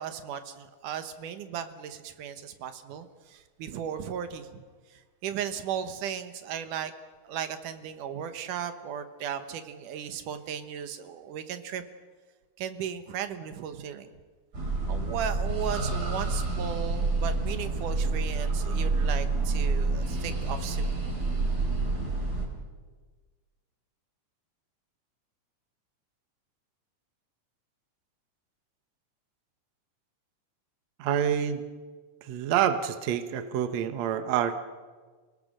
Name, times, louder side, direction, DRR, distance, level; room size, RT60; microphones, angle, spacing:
voice 1, 0.0-4.6 4.9-6.9 7.2-11.8 12.6-14.2 14.9-20.9, right 8 dB, 85° right, 9 dB, 2.7 m, -36 dB
sound 1, 14.5-22.5, right 3 dB, 30° right, 4.5 m, -28 dB
voice 2, 31.0-31.6 32.3-34.6, right 9 dB, 65° right, 9 dB, 2.2 m, -27 dB
29.0 x 18.5 x 6.5 m, 1.4 s
omnidirectional pair, 3.6 m